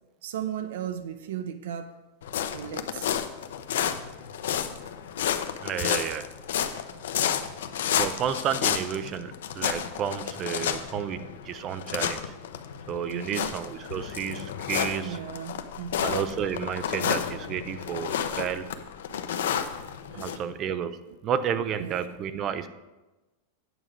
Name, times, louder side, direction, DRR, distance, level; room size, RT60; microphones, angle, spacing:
voice 1, 0.2-1.9 2.5-3.1 13.1-13.6 15.0-16.2 17.0-17.2 18.2-18.3 19.1-19.2 20.0-20.4 21.8-22.1, right 9 dB, 70° right, 8 dB, 0.6 m, -36 dB
sound 1, 2.2-20.4, left 9 dB, 85° left, 0.7 m, -31 dB
voice 2, 5.6-6.3 8.0-12.3 12.9-15.2 16.0-18.7 20.1-21.0 21.2-22.7, right 8 dB, 25° right, 12 dB, 0.4 m, -31 dB
9.3 x 7.4 x 5.1 m, 1.1 s
supercardioid pair, 175°, 0 cm